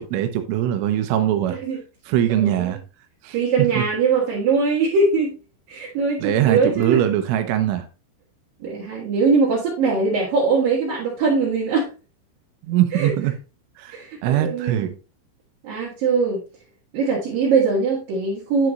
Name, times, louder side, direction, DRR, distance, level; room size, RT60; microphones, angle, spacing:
voice 1, 0.0-1.6 2.1-2.8 3.2-3.4 3.8-3.9 6.2-7.9 12.6-13.3 13.8-14.0 14.2-14.9, right 11 dB, 85° right, 3.4 m, -21 dB
voice 2, 1.5-1.8 2.3-2.7 3.3-5.4 5.7-7.0 8.6-11.9 12.9-13.1 13.9-14.9 15.6-16.4 16.9-18.7, right 4 dB, 55° right, 3.1 m, -21 dB
11.0 x 5.0 x 3.0 m
omnidirectional pair, 5.6 m